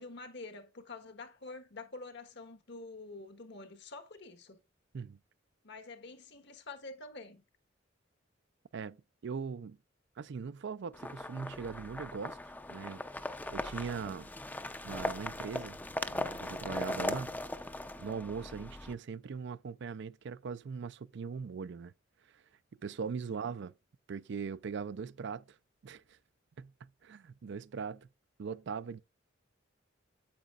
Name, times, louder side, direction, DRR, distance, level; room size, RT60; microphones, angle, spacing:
voice 1, 0.0-4.6 5.6-7.4, left 3 dB, 65° left, 1.3 m, -47 dB
voice 2, 9.2-9.8 10.2-12.4 12.7-14.3 14.8-15.8 16.1-17.3 18.0-21.9 22.3-22.4 22.8-23.7 24.1-25.5 25.8-26.2 26.6-28.1 28.4-29.0, right 5 dB, 65° right, 0.4 m, -40 dB
sound 1, 10.9-18.9, left 1 dB, 10° left, 0.5 m, -39 dB
8.7 x 8.2 x 2.4 m
head